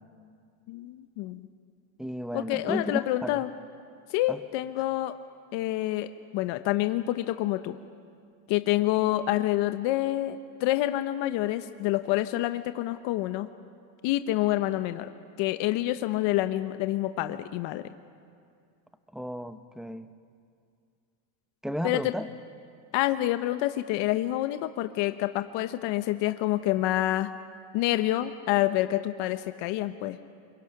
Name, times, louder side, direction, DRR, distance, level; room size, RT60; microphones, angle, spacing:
voice 1, 0.7-1.5 2.3-3.5 4.1-5.1 5.5-7.8 8.5-13.5 14.0-15.1 15.4-17.9 21.8-22.1 22.9-27.3 27.7-30.2, left 15 dB, 60° left, 10 dB, 1.0 m, -27 dB
voice 2, 2.0-3.4 4.3-4.4 19.1-20.1 21.6-22.3, equal, ahead, 10 dB, 0.9 m, -33 dB
28.0 x 23.0 x 6.0 m, 2.3 s
supercardioid pair, 115°, 48 cm